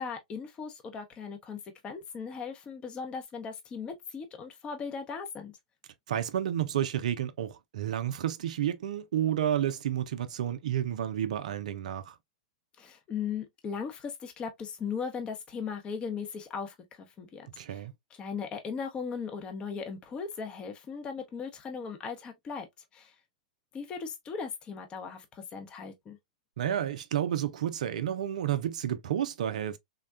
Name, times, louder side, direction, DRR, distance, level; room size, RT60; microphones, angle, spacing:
voice 1, 0.0-5.5 12.8-17.8 18.2-22.7 22.9-23.1 23.7-26.2, left 6 dB, 25° left, 0.6 m, -38 dB
voice 2, 6.1-12.1 17.6-17.9 26.6-29.8, right 10 dB, 65° right, 0.4 m, -31 dB
3.4 x 2.2 x 2.3 m
hypercardioid pair, 110°, 4 cm